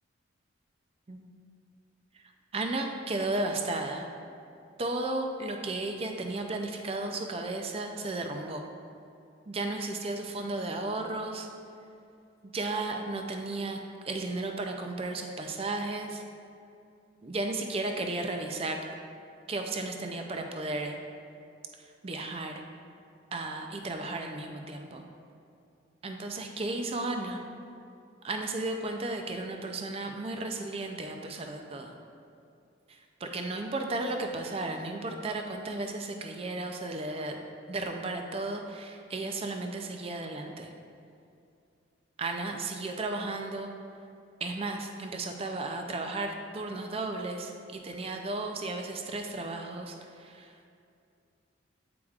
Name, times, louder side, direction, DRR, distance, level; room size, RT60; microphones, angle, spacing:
voice 1, 2.5-4.0 4.8-8.6 9.5-11.5 12.5-13.8 14.1-16.2 17.2-18.8 19.5-20.9 22.0-22.6 23.3-25.0 26.0-27.4 28.2-31.9 33.2-37.4 37.7-40.7 42.2-43.7 44.4-49.9 50.2-50.5, right 2 dB, 30° right, 4 dB, 0.4 m, -34 dB
8.5 x 4.8 x 2.4 m, 2.5 s
head